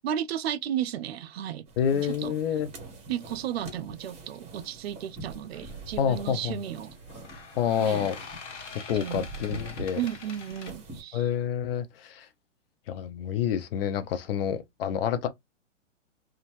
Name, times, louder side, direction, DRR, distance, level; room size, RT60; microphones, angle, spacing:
voice 1, 0.0-1.6 2.0-2.3 3.1-7.0 7.8-8.1 8.9-9.2 9.9-11.3, right 10 dB, 55° right, 0.4 m, -33 dB
sound 1, 1.7-11.0, right 2 dB, 15° right, 1.3 m, -44 dB
voice 2, 1.8-2.7 6.0-6.6 7.6-8.2 8.7-10.0 11.1-12.3 12.9-15.3, left 9 dB, 50° left, 0.6 m, -28 dB
sound 2, 5.5-5.8 7.1-10.7, left 5 dB, 70° left, 1.0 m, -44 dB
2.6 x 2.4 x 3.0 m
hypercardioid pair, 135°, 37 cm